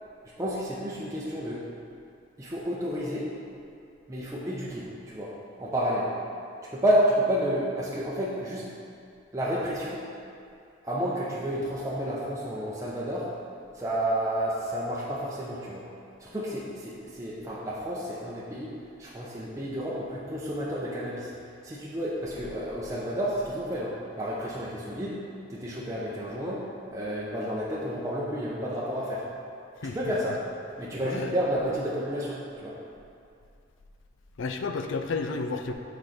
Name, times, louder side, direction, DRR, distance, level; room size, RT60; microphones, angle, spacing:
voice 1, 0.4-1.6 2.4-3.3 4.1-5.3 5.6-6.1 6.7-8.6 9.3-10.0 10.8-13.3 13.7-15.8 16.2-18.7 19.0-21.3 21.6-25.2 25.5-26.6 26.9-29.2 29.8-30.4 30.8-32.7, equal, 15° right, -6 dB, 0.7 m, -30 dB
voice 2, 31.0-31.4 34.4-35.7, left 4 dB, 85° left, 6 dB, 0.5 m, -31 dB
6.3 x 4.4 x 5.0 m, 2.5 s
head